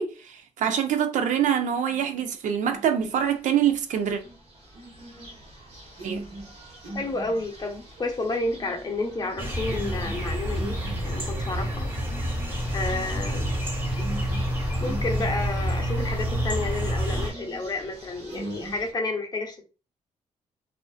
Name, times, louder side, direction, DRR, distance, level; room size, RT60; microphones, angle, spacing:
voice 1, 0.0-4.2 6.0-6.2, right 9 dB, 70° right, 0.4 m, -25 dB
sound 1, 1.8-2.3 2.7-3.2 3.7-18.9, right 1 dB, 50° right, 1.1 m, -42 dB
voice 2, 6.9-11.9 12.7-13.5 14.8-19.6, left 2 dB, 30° left, 0.6 m, -31 dB
sound 2, 9.4-17.3, equal, 15° right, 1.2 m, -28 dB
2.5 x 2.3 x 2.3 m
cardioid pair, 100°, 13 cm